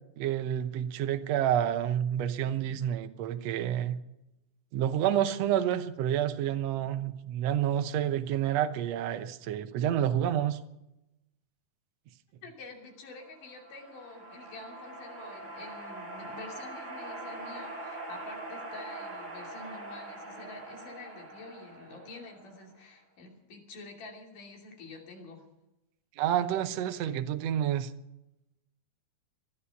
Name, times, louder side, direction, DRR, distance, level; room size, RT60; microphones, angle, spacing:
voice 1, 0.2-4.0 4.7-10.6 26.2-27.9, right 10 dB, 65° right, 9 dB, 1.8 m, -29 dB
voice 2, 12.4-25.4, left 3 dB, 80° left, 1 dB, 4.4 m, -47 dB
sound 1, 13.2-22.7, right 2 dB, 25° right, 3.1 m, -43 dB
20.0 x 12.0 x 5.9 m, 0.91 s
omnidirectional pair, 3.7 m